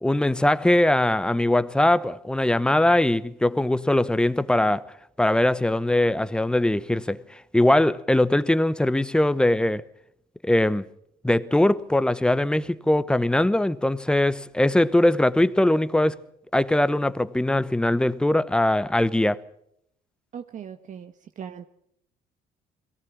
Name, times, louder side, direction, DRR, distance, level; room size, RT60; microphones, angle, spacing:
voice 1, 0.0-4.9 5.2-9.8 10.4-10.9 11.2-16.2 16.5-19.4, left 1 dB, 5° left, 0.8 m, -21 dB
voice 2, 20.3-21.7, right 8 dB, 50° right, 1.1 m, -39 dB
22.5 x 17.5 x 7.2 m
cardioid pair, 110°, 17 cm